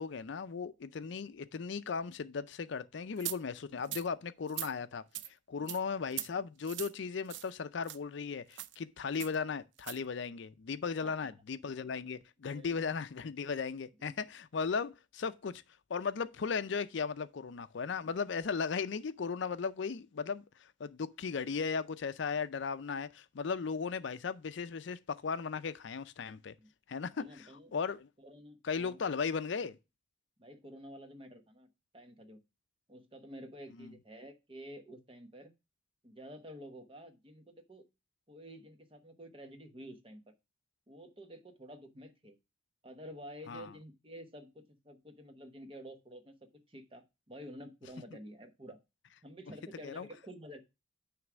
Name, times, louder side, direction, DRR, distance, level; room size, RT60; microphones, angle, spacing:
voice 1, 0.0-15.6 15.9-26.6 26.9-27.2 27.7-28.1 28.7-29.8 33.8-33.9 43.5-43.7 49.8-50.1, left 5 dB, 65° left, 0.4 m, -36 dB
sound 1, 3.2-3.4 3.8-4.1 4.5-4.7 5.1-5.3 5.7-5.8 6.1-6.3 6.6-6.9 7.3-7.5 7.8-8.0 8.5-8.7 9.2-9.3 9.8-10.0, right 13 dB, 65° right, 0.4 m, -40 dB
voice 2, 11.0-11.3 12.1-12.2 12.5-12.8 14.0-14.2 26.6-26.7 27.1-27.7 28.2-29.0 30.4-31.7 31.9-32.4 32.9-35.5 36.0-37.9 38.3-40.2 40.9-42.4 42.8-48.8 49.2-50.6, equal, 25° right, 1.0 m, -50 dB
9.4 x 3.2 x 6.0 m
head